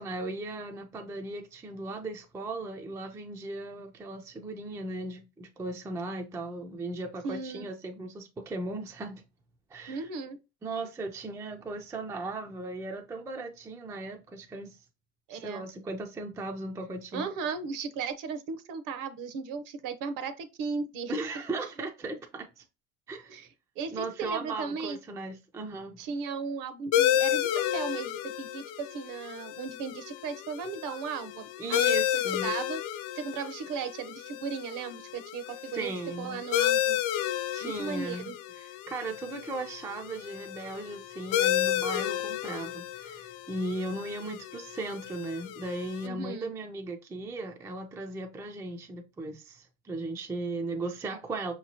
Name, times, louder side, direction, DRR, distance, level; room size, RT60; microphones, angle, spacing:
voice 1, 0.0-9.2 9.7-10.1 10.6-14.8 15.3-17.2 21.1-22.6 23.1-23.4 23.9-26.0 31.6-32.5 35.7-36.4 37.5-51.5, right 2 dB, 10° right, 0.4 m, -37 dB
voice 2, 7.2-7.7 9.9-10.4 15.3-15.6 17.1-21.1 23.3-23.5 23.8-25.0 26.0-32.8 33.1-37.0 37.6-38.3 46.0-46.5, right 5 dB, 50° right, 0.7 m, -36 dB
sound 1, 26.9-46.1, left 12 dB, 55° left, 0.5 m, -32 dB
5.4 x 3.0 x 2.8 m
supercardioid pair, 110°, 40 cm